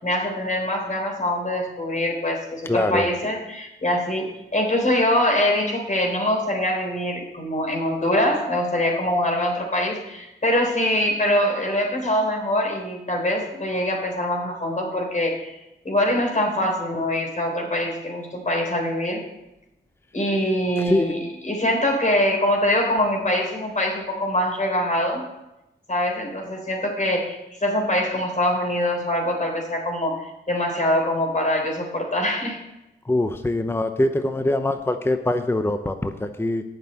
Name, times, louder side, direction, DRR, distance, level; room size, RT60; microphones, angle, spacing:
voice 1, 0.0-15.6 15.8-19.2 20.1-25.2 25.9-32.6, left 1 dB, 40° left, 0 dB, 3.9 m, -23 dB
voice 2, 2.6-3.1 20.9-21.2 33.1-36.6, left 1 dB, 10° left, 8 dB, 0.8 m, -23 dB
8.3 x 6.7 x 8.3 m, 0.93 s
cardioid pair, 50°, 20 cm